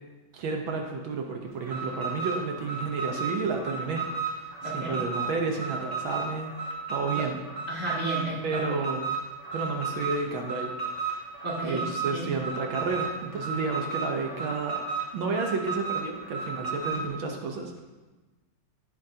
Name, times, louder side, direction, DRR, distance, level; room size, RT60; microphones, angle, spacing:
voice 1, 0.3-4.1 4.6-6.5 6.9-7.4 8.4-9.1 9.5-10.7 11.0-11.3 11.6-14.8 15.1-17.7, right 4 dB, 75° right, 2 dB, 1.7 m, -31 dB
Alarm, 1.6-17.1, right 5 dB, 50° right, 3.2 m, -33 dB
voice 2, 4.6-5.0 7.1-7.3 7.7-8.6 11.4-11.8 12.1-12.3, right 2 dB, 30° right, -6 dB, 2.8 m, -33 dB
17.0 x 7.2 x 2.8 m, 1.2 s
omnidirectional pair, 2.3 m